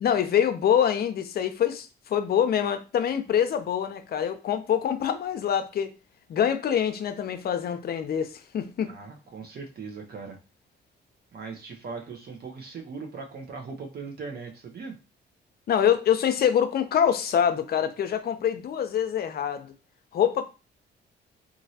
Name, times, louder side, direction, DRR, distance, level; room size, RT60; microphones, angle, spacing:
voice 1, 0.0-5.9 6.3-8.9 15.7-19.7 20.1-20.4, left 9 dB, 50° left, 0.5 m, -25 dB
voice 2, 8.9-10.4 11.3-14.9, right 4 dB, 50° right, 0.7 m, -39 dB
3.0 x 2.5 x 2.7 m
cardioid pair, 90°, 20 cm